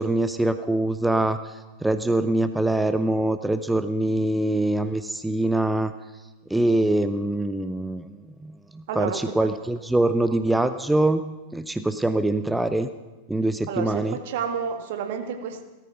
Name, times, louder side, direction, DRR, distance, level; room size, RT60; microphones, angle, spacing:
voice 1, 0.0-5.9 6.5-11.2 11.5-12.9 13.3-14.1, right 1 dB, 5° right, 11 dB, 0.6 m, -24 dB
voice 2, 8.9-9.5 10.3-10.4 13.7-15.6, right 7 dB, 55° right, 6 dB, 1.8 m, -30 dB
17.5 x 13.5 x 5.8 m, 1.2 s
figure-of-eight pair, 90°, 0 cm